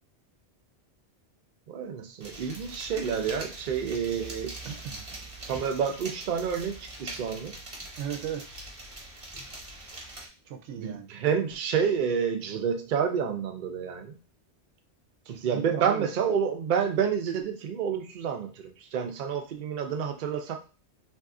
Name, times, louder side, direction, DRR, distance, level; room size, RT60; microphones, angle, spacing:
voice 1, 1.7-4.6 5.4-7.6 10.8-14.2 15.3-20.6, right 7 dB, 55° right, 4 dB, 0.6 m, -29 dB
sound 1, 2.2-10.3, right 2 dB, 30° right, 0.9 m, -43 dB
voice 2, 4.6-5.0 8.0-8.4 10.5-11.1 15.3-16.1, right 9 dB, 85° right, 6 dB, 0.9 m, -36 dB
2.6 x 2.4 x 3.6 m, 0.33 s
omnidirectional pair, 1.1 m